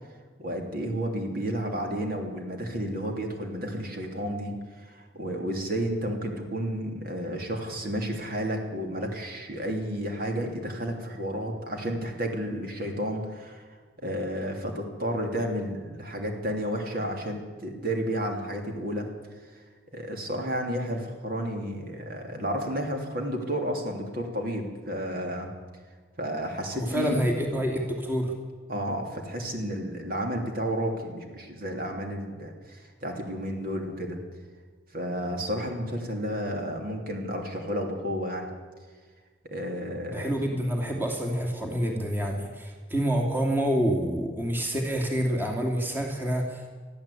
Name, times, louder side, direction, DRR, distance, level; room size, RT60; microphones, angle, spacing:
voice 1, 0.4-13.7 14.0-19.1 19.5-19.6 19.9-25.5 26.2-27.2 28.7-34.2 34.9-38.5 39.4-40.4, equal, 50° right, 2 dB, 3.0 m, -32 dB
voice 2, 26.7-28.3 40.1-46.7, equal, 10° right, 1 dB, 2.8 m, -27 dB
21.5 x 14.0 x 8.5 m, 1.5 s
head